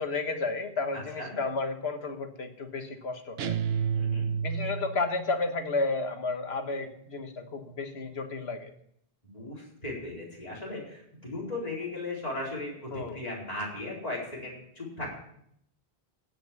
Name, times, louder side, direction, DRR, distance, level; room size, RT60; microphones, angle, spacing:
voice 1, 0.0-3.6 4.4-8.7 12.9-13.2, left 3 dB, 75° left, 7 dB, 1.6 m, -32 dB
voice 2, 0.9-1.3 3.9-4.3 9.2-15.1, left 2 dB, 35° left, -4 dB, 4.6 m, -37 dB
sound 1, 3.4-5.1, right 7 dB, 70° right, 1.0 m, -29 dB
16.5 x 6.0 x 8.4 m, 0.72 s
omnidirectional pair, 1.1 m